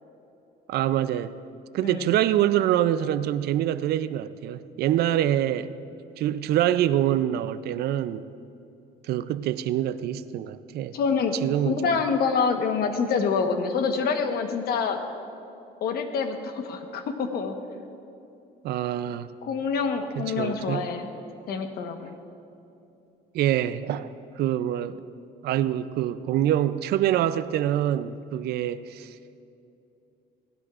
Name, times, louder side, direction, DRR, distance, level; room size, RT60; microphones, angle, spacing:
voice 1, 0.7-1.4 1.7-5.8 6.2-8.3 9.0-11.0 11.4-12.0 18.6-19.3 20.2-20.9 23.3-25.0 25.4-29.2, right 12 dB, 70° right, 0.5 m, -25 dB
voice 2, 1.8-2.2 10.9-11.3 11.6-15.0 15.8-17.6 19.4-21.1 21.5-22.2, left 5 dB, 65° left, 1.2 m, -26 dB
18.0 x 16.5 x 2.5 m
cardioid pair, 110°, 17 cm